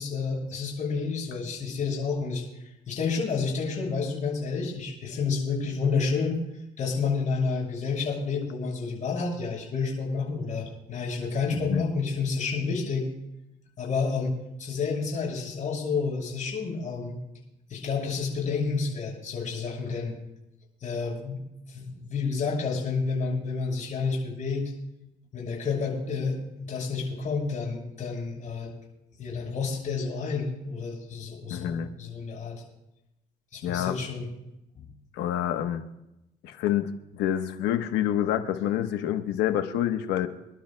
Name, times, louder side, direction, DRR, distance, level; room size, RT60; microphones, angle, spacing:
voice 1, 0.0-2.4 2.9-6.4 6.8-13.1 13.8-17.2 17.7-20.1 20.8-21.4 21.7-24.7 25.3-28.7 29.2-32.6 33.5-34.3 34.7-34.9, left 4 dB, 50° left, -2 dB, 6.5 m, -30 dB
voice 2, 11.5-11.9 31.5-31.9 33.6-34.0 35.1-35.8 36.4-40.3, left 11 dB, 90° left, 8 dB, 1.1 m, -27 dB
29.0 x 12.0 x 2.2 m, 0.90 s
cardioid pair, 110°, 17 cm